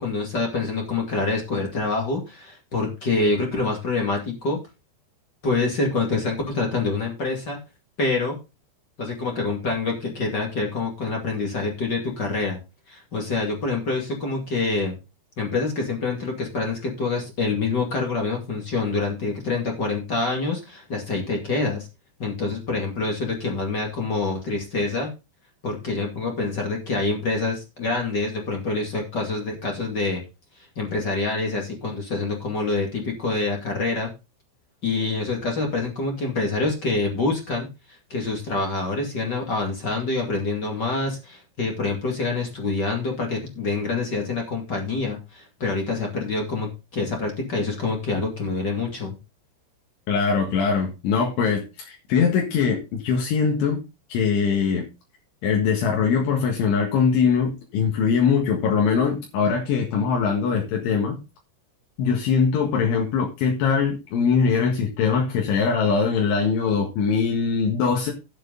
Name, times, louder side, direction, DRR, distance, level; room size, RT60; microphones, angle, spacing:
voice 1, 0.0-4.6 5.4-7.6 8.0-8.4 9.0-12.6 12.9-15.0 15.4-21.9 22.2-25.1 25.6-30.2 30.6-34.1 34.8-49.2, left 3 dB, 40° left, 1 dB, 1.5 m, -26 dB
voice 2, 50.1-53.8 54.1-54.9 55.4-61.2 62.0-68.1, left 6 dB, 75° left, 0 dB, 4.0 m, -22 dB
11.0 x 8.0 x 3.9 m, 0.27 s
omnidirectional pair, 5.7 m